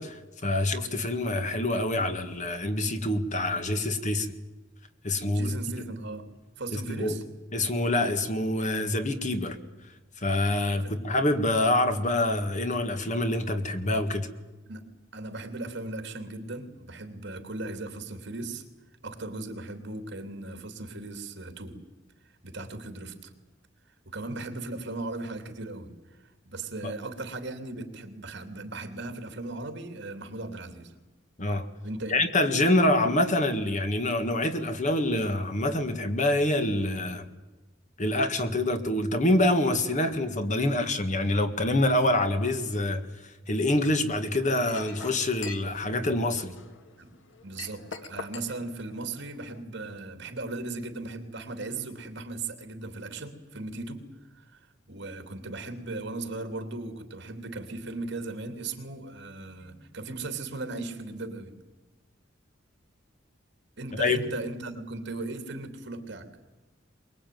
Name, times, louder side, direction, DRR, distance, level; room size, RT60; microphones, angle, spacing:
voice 1, 0.0-4.3 5.0-5.5 6.7-7.1 7.5-9.6 10.2-14.3 26.8-26.9 31.4-31.7 32.1-37.2 38.0-43.0 43.5-46.6 64.0-64.2, left 1 dB, 40° left, 8 dB, 1.8 m, -26 dB
voice 2, 5.2-6.3 6.6-7.2 10.8-11.1 14.7-14.8 15.1-18.6 19.0-21.8 22.4-23.3 24.0-26.2 26.4-30.9 31.8-32.2 40.1-40.2 47.0-47.1 47.4-54.0 54.3-54.6 54.9-61.5 63.8-66.3, right 2 dB, 65° right, 7 dB, 3.0 m, -37 dB
Chink clink, 44.6-49.6, left 4 dB, 75° left, 1.8 m, -44 dB
23.5 x 22.0 x 9.4 m, 1.1 s
head